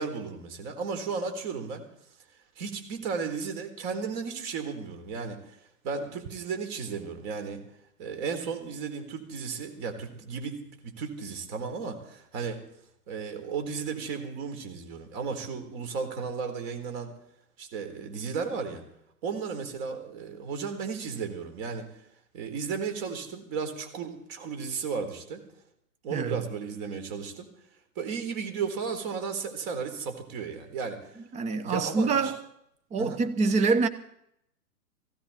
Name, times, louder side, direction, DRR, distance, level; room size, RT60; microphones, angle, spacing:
voice 1, 0.0-1.8 2.6-7.6 8.0-10.6 10.8-12.6 13.1-17.1 17.6-18.8 19.2-22.0 22.3-25.4 26.0-27.5 28.0-31.2 31.6-32.3 33.0-33.2, right 5 dB, 40° right, 4.1 m, -34 dB
voice 2, 31.3-32.4 32.9-33.9, right 4 dB, 15° right, 0.9 m, -25 dB
18.5 x 16.5 x 4.3 m
hypercardioid pair, 130°, 46 cm